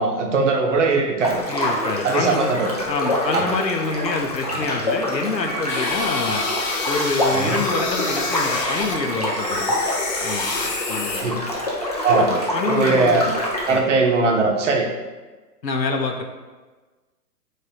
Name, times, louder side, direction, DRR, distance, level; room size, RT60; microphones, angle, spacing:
voice 1, 0.0-1.4 2.0-2.7 3.3-3.5 4.5-4.6 7.3-7.6 11.2-11.4 12.0-12.3 12.7-13.3 13.7-14.9, right 3 dB, 45° right, 2 dB, 0.8 m, -20 dB
sound 1, 1.2-13.8, left 1 dB, 25° left, 0.4 m, -26 dB
voice 2, 1.5-2.5 2.9-6.4 6.9-9.8 10.2-10.5 10.9-11.3 12.2-13.2 13.7-13.8 15.6-16.2, left 4 dB, 90° left, 3 dB, 0.8 m, -26 dB
Wind instrument woodwind instrument, 5.5-9.8, equal, 80° right, 0.7 m, -33 dB
sound 2, 5.7-8.9 9.3-11.2, left 3 dB, 50° left, 0.9 m, -28 dB
3.6 x 3.3 x 4.3 m, 1.3 s
figure-of-eight pair, 130°, 50 cm